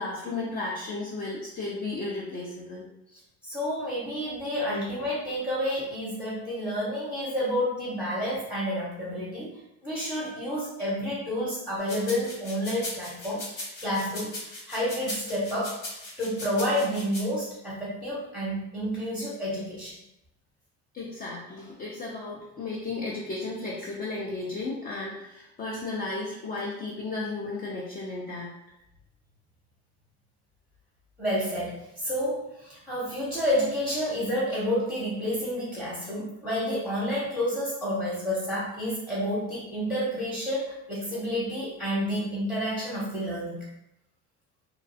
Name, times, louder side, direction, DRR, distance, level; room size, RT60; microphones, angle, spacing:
voice 1, 0.0-2.9 20.9-28.5, left 3 dB, 30° left, -4 dB, 0.4 m, -34 dB
voice 2, 3.1-9.5 9.8-20.0 31.2-43.6, equal, ahead, -8 dB, 0.8 m, -30 dB
sound 1, 11.9-17.2, left 1 dB, 85° left, 1.5 m, -38 dB
2.3 x 2.3 x 2.6 m, 0.85 s
cardioid pair, 120°, 30 cm